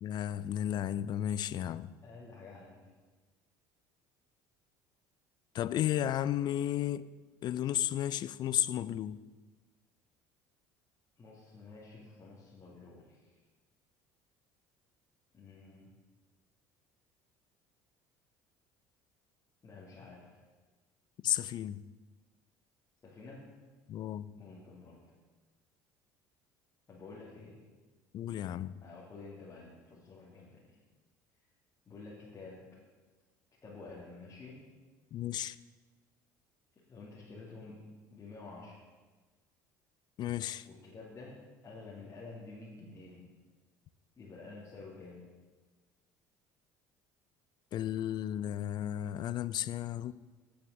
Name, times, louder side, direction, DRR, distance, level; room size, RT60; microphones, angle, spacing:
voice 1, 0.0-1.9 5.5-7.1 7.4-9.2 21.2-21.8 23.9-24.3 28.1-28.8 35.1-35.6 40.2-40.7 47.7-50.1, left 11 dB, 50° left, 0.4 m, -33 dB
voice 2, 2.0-2.9 11.2-13.4 15.3-16.0 19.6-20.4 23.0-23.6 24.4-25.1 26.9-27.6 28.8-30.8 31.8-32.8 33.6-34.6 36.8-38.9 40.6-43.3 44.2-45.3, left 3 dB, 35° left, 2.5 m, -50 dB
9.3 x 6.8 x 6.4 m
supercardioid pair, 80°, 9 cm